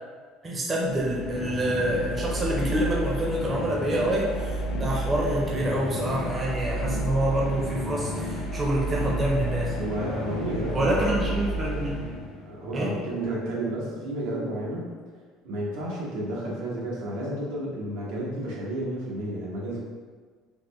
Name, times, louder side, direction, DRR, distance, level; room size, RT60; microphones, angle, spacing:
voice 1, 0.4-9.8 10.7-12.0 12.7-12.9, right 1 dB, 25° right, -3 dB, 0.5 m, -27 dB
sound 1, 0.8-12.6, right 1 dB, 60° left, 0.5 m, -31 dB
voice 2, 9.8-11.1 12.4-14.9 15.4-19.8, right 1 dB, 85° right, -5 dB, 0.9 m, -31 dB
3.6 x 2.1 x 3.1 m, 1.5 s
cardioid pair, 140°, 0 cm